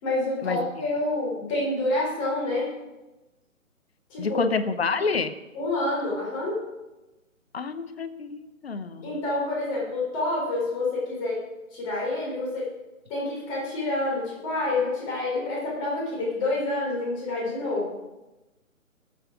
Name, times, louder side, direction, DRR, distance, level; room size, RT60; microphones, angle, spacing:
voice 1, 0.0-2.7 4.1-4.4 5.5-6.6 9.0-11.4 11.7-12.7 13.1-17.9, left 2 dB, 25° left, -4 dB, 3.7 m, -28 dB
voice 2, 4.2-5.4 7.5-9.1, left 4 dB, 45° left, 12 dB, 0.9 m, -28 dB
18.5 x 7.3 x 4.8 m, 1.0 s
figure-of-eight pair, 145°, 41 cm